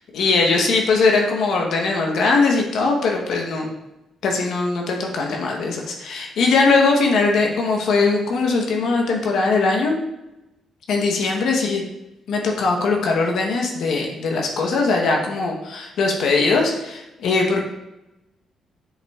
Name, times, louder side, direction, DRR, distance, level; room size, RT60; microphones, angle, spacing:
voice 1, 0.1-3.7 4.2-9.9 10.9-11.8 12.3-17.6, left 3 dB, 75° left, 0 dB, 0.9 m, -20 dB
7.5 x 5.6 x 2.4 m, 0.93 s
cardioid pair, 90°, 0 cm